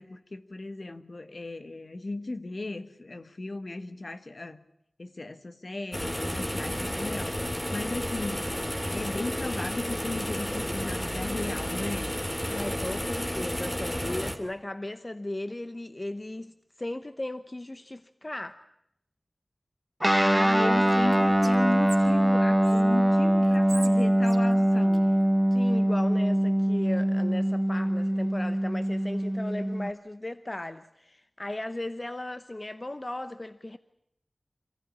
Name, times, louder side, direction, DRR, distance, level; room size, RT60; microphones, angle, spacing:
voice 1, 0.0-4.6 5.0-8.5 8.9-12.2 20.2-25.2, left 2 dB, 55° left, 1.5 m, -36 dB
sound 1, 5.9-14.3, equal, 15° left, 2.8 m, -32 dB
voice 2, 12.5-18.6 25.5-33.8, left 1 dB, 30° left, 0.9 m, -36 dB
Guitar, 20.0-29.9, right 1 dB, 5° right, 1.0 m, -23 dB
Whispering, 20.8-22.8 23.4-25.6, right 3 dB, 70° right, 2.6 m, -45 dB
26.5 x 15.0 x 9.9 m
wide cardioid pair, 65°, 0 cm